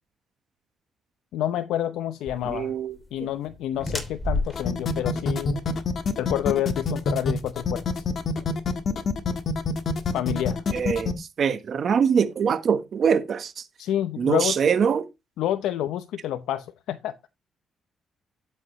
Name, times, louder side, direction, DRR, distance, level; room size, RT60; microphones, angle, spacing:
voice 1, 1.3-2.7 3.1-5.6 6.2-8.0 10.1-10.6 13.8-14.6 15.4-17.1, left 11 dB, 85° left, 0.7 m, -28 dB
sound 1, 2.3-8.4, left 2 dB, 15° left, 3.1 m, -35 dB
voice 2, 2.4-3.0 10.7-13.6 14.2-15.1, right 7 dB, 55° right, 1.2 m, -23 dB
sound 2, 4.5-11.1, left 4 dB, 50° left, 1.5 m, -26 dB
12.0 x 8.1 x 3.1 m
cardioid pair, 90°, 0 cm